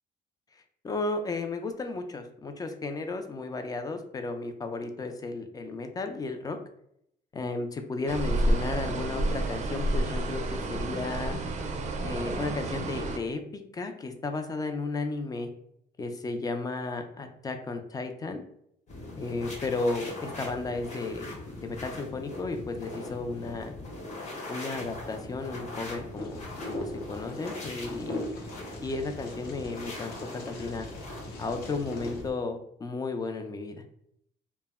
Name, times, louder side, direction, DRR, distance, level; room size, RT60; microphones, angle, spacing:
voice 1, 0.6-6.6 7.3-11.4 12.0-15.5 16.0-18.4 19.2-23.7 24.5-28.2 28.8-30.1 30.5-30.9 31.4-33.8, left 3 dB, 20° left, 6 dB, 0.3 m, -34 dB
sound 1, 8.1-13.2, right 1 dB, 45° right, 0.4 m, -30 dB
sound 2, 18.9-32.3, left 1 dB, 45° left, 1.0 m, -41 dB
Wind, 26.2-32.2, left 1 dB, 65° left, 0.7 m, -41 dB
2.1 x 2.0 x 3.4 m, 0.71 s
cardioid pair, 110°, 17 cm